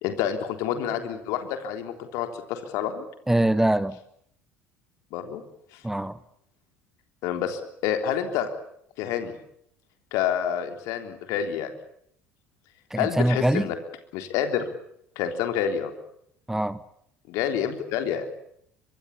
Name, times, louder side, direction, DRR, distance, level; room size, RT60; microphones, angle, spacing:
voice 1, 0.0-3.0 5.1-5.4 5.7-5.8 7.2-8.5 9.0-9.3 10.1-11.7 13.0-13.8 14.1-14.7 15.2-15.9 17.3-18.3, left 9 dB, 55° left, 3.5 m, -28 dB
voice 2, 3.3-4.0 5.8-6.2 12.9-13.7 16.5-16.8, right 1 dB, 5° right, 0.9 m, -23 dB
24.0 x 23.0 x 8.4 m
figure-of-eight pair, 60°, 6 cm